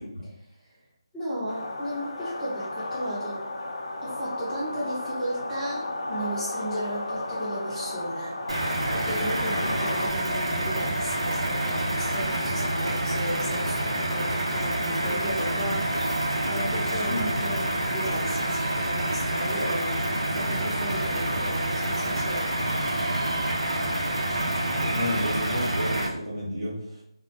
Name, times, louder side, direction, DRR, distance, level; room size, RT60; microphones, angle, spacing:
voice 1, 1.1-3.4 4.0-8.4 8.9-22.6, equal, 5° left, -9 dB, 0.5 m, -35 dB
sound 1, 1.5-10.1, left 2 dB, 60° left, 0.4 m, -34 dB
sound 2, 8.5-26.1, right 1 dB, 90° right, 0.5 m, -27 dB
voice 2, 17.1-17.4 24.3-27.0, equal, 55° right, -6 dB, 0.9 m, -32 dB
2.3 x 2.1 x 2.6 m, 0.75 s
figure-of-eight pair, 170°, 3 cm